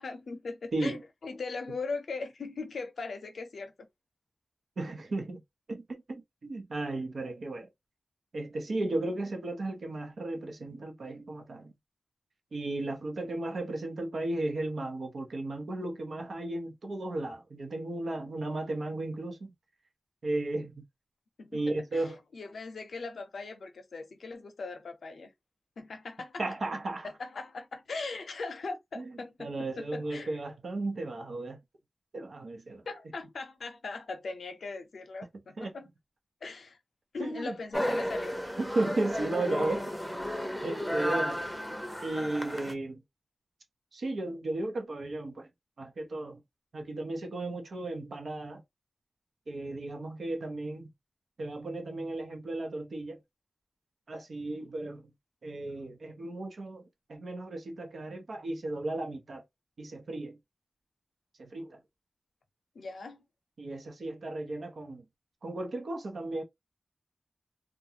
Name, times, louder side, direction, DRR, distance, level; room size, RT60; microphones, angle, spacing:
voice 1, 0.0-3.7 21.4-22.1 22.3-25.3 25.8-26.4 27.2-30.4 32.9-35.9 36.4-36.8 37.1-38.4 62.7-63.2, left 3 dB, 90° left, 0.6 m, -39 dB
voice 2, 4.8-5.4 5.7-7.7 8.3-11.7 12.5-19.5 20.2-20.8 21.5-22.2 26.4-27.1 29.0-29.1 29.4-31.6 32.1-32.8 35.6-35.7 37.2-37.5 38.6-39.8 40.6-41.4 42.0-43.0 43.9-45.5 45.8-46.4 46.7-48.6 49.5-50.9 51.4-53.2 54.1-55.1 55.4-59.4 59.8-60.4 61.4-61.8 63.6-65.0 65.4-66.4, right 2 dB, 80° right, 0.7 m, -35 dB
sound 1, 37.7-42.7, equal, ahead, 0.6 m, -33 dB
2.5 x 2.2 x 2.8 m
wide cardioid pair, 70°, 0 cm